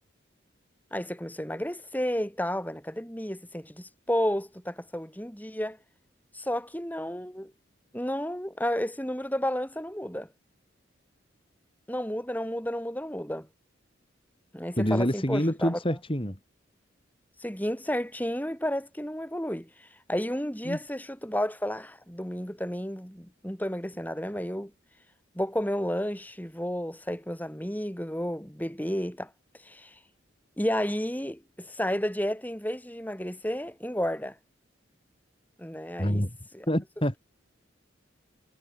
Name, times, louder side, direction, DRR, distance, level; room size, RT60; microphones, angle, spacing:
voice 1, 0.9-5.8 6.3-7.5 7.9-10.3 11.9-13.5 14.5-15.8 17.4-24.7 25.3-29.3 29.6-30.0 30.6-34.4 35.6-36.2 36.5-36.7, equal, 10° left, 6.4 m, -32 dB
voice 2, 14.8-16.4 20.6-20.8 36.0-36.4 36.7-37.2, equal, 30° left, 4.2 m, -27 dB
head